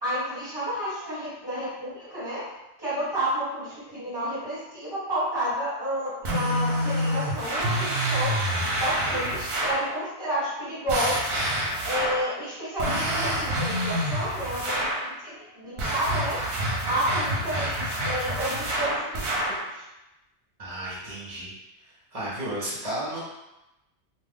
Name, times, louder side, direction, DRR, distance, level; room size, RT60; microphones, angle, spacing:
voice 1, 0.0-2.4 2.8-8.3 8.8-11.4 11.8-16.4 16.9-19.8, right 1 dB, 20° right, -10 dB, 1.4 m, -31 dB
sound 1, 6.2-9.9 10.9-12.3 12.8-15.1 15.8-19.6, equal, 65° right, 0.9 m, -27 dB
voice 2, 20.6-21.5 22.1-23.2, right 1 dB, 35° right, -8 dB, 0.8 m, -33 dB
2.5 x 2.4 x 3.4 m, 0.94 s
omnidirectional pair, 1.2 m